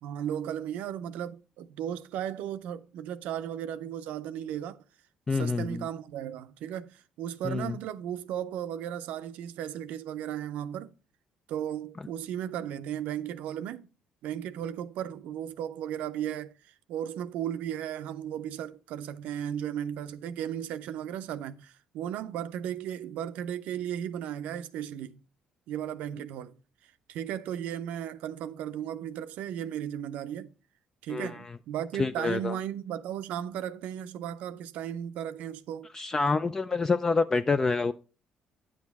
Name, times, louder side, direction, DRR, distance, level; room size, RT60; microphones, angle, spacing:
voice 1, 0.0-4.8 5.3-10.9 11.5-13.9 14.2-25.2 25.7-26.6 26.8-30.5 31.0-35.9, right 10 dB, 80° right, 0.5 m, -35 dB
voice 2, 5.3-5.9 7.4-7.8 31.1-31.5 32.0-32.6 35.9-37.9, left 4 dB, 25° left, 0.3 m, -27 dB
9.6 x 6.3 x 3.5 m
cardioid pair, 105°, 2 cm